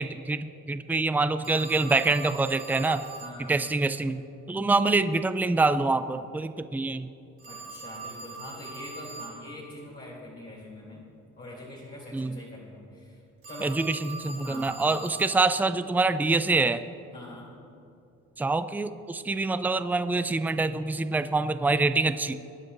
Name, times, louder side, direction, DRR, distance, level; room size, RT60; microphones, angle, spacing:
voice 1, 0.0-3.0 3.5-4.2 4.5-7.1 12.1-12.4 13.6-16.8 18.4-22.3, right 3 dB, 5° right, 11 dB, 0.4 m, -25 dB
Telephone, 1.4-3.4 7.4-9.4 13.4-15.4, right 4 dB, 45° right, 2.7 m, -42 dB
voice 2, 3.2-3.6 7.4-11.0 11.4-13.8 14.4-14.8 17.1-17.5, left 1 dB, 35° left, -7 dB, 3.3 m, -44 dB
23.5 x 9.9 x 2.6 m, 2.7 s
cardioid pair, 90°, 30 cm